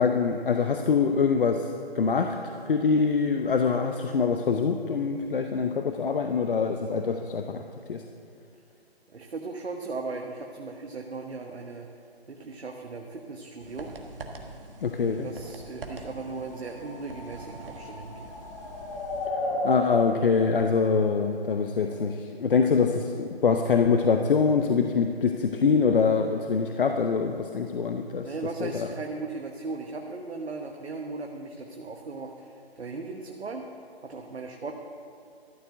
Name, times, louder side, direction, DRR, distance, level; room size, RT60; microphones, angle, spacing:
voice 1, 0.0-1.7 1.9-2.4 2.7-7.6 7.9-8.0 14.8-15.3 19.6-28.3 28.6-28.9, left 5 dB, 55° left, 5 dB, 0.7 m, -24 dB
voice 2, 9.1-11.9 12.3-13.9 15.0-18.4 28.2-33.6 34.0-34.7, right 3 dB, 80° right, 2 dB, 1.1 m, -37 dB
sound 1, 13.6-19.3, right 3 dB, 60° right, 1.5 m, -44 dB
sound 2, 16.2-22.0, left 1 dB, 20° left, 1.4 m, -35 dB
13.0 x 6.9 x 7.9 m, 2.5 s
hypercardioid pair, 155°, 32 cm